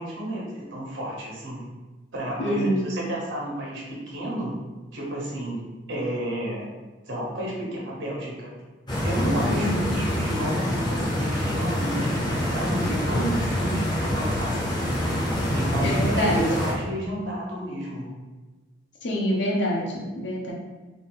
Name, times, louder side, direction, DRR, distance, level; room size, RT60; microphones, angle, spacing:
voice 1, 0.0-1.6 2.1-4.6 4.9-5.6 5.9-6.7 7.0-8.5 9.0-15.2 15.5-18.1, right 1 dB, 85° right, -4 dB, 1.1 m, -31 dB
voice 2, 2.4-3.0 9.4-9.9 15.8-16.4 19.0-20.5, equal, 70° left, -1 dB, 0.8 m, -26 dB
Stream, 8.9-16.7, left 1 dB, 25° left, 0.6 m, -26 dB
3.5 x 2.5 x 3.9 m, 1.2 s
head